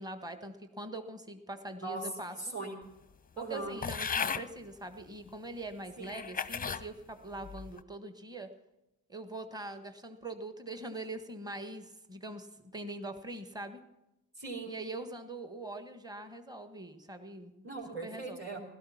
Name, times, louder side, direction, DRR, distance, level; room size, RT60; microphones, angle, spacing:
voice 1, 0.0-2.3 3.4-8.5 9.1-12.5 12.7-13.8 14.7-17.5 18.0-18.4, right 2 dB, 10° right, 9 dB, 1.5 m, -43 dB
voice 2, 2.3-2.8 3.4-3.7 6.0-6.1 14.4-14.8 17.6-18.6, right 3 dB, 25° right, -3 dB, 3.9 m, -39 dB
sound 1, 3.8-4.5 5.3-5.4 6.0-6.8 7.4-7.8, left 6 dB, 15° left, 0.7 m, -35 dB
16.5 x 13.0 x 5.9 m, 0.90 s
hypercardioid pair, 50°, 49 cm